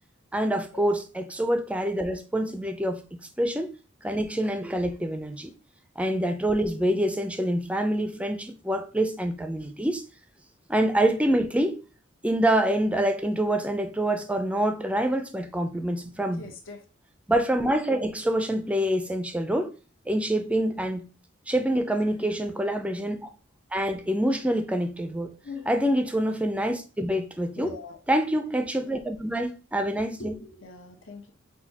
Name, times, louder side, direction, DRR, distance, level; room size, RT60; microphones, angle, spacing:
voice 1, 0.3-3.7 4.0-5.5 6.0-10.0 10.7-11.8 12.2-16.4 17.3-19.7 20.1-21.1 21.5-23.3 23.7-25.3 25.7-27.7 28.1-30.4, right 1 dB, 5° right, 0.4 m, -26 dB
voice 2, 16.4-16.8 22.0-22.1 25.4-25.7 27.5-28.0 28.5-28.9 30.2-31.3, left 4 dB, 85° left, 0.9 m, -42 dB
6.1 x 2.3 x 2.8 m
head